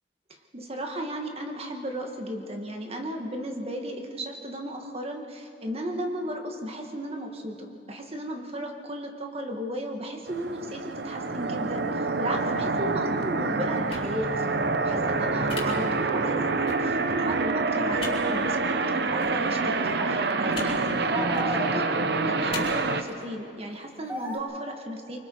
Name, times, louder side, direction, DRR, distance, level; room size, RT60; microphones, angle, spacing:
voice 1, 0.5-11.9 12.2-25.2, right 1 dB, 35° right, 3 dB, 1.9 m, -34 dB
sound 1, 10.3-23.0, right 3 dB, 65° right, 0.9 m, -27 dB
sound 2, 13.9-14.1 15.5-15.6 16.7-16.8 18.0-18.1 19.2-19.3 20.5-20.7 21.2-21.5 22.5-22.6, left 5 dB, 35° left, 3.8 m, -37 dB
sound 3, 18.5-18.8 19.8-20.7 21.1-22.4 23.1-23.2 24.1-24.4, equal, 10° right, 2.5 m, -36 dB
25.0 x 24.5 x 4.7 m, 2.9 s
head